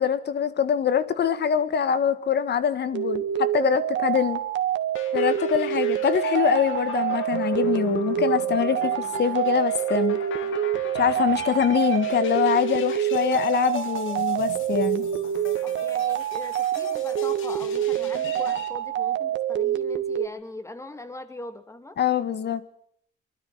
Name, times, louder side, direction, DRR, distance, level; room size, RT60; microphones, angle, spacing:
voice 1, 0.0-4.4 5.1-8.9 9.2-10.2 10.9-15.1 22.0-22.6, left 8 dB, 55° left, 1.7 m, -24 dB
sound 1, 2.9-20.3, right 11 dB, 70° right, 1.7 m, -26 dB
sound 2, 5.0-18.7, left 7 dB, 80° left, 2.3 m, -39 dB
voice 2, 15.6-22.0, left 2 dB, 15° left, 2.5 m, -40 dB
24.0 x 13.0 x 9.4 m
cardioid pair, 90°, 20 cm